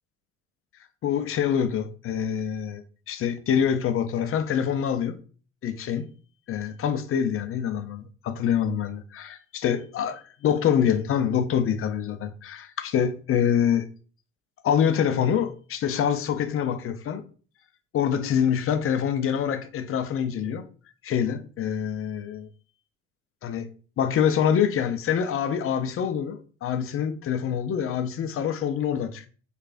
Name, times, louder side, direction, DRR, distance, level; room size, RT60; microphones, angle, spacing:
voice 1, 1.0-5.2 5.6-6.1 6.5-13.9 14.6-17.2 17.9-20.6 21.0-22.5 23.4-23.7 24.0-29.3, left 8 dB, 40° left, 0.5 m, -25 dB
4.6 x 2.4 x 2.4 m
hypercardioid pair, 65°, 35 cm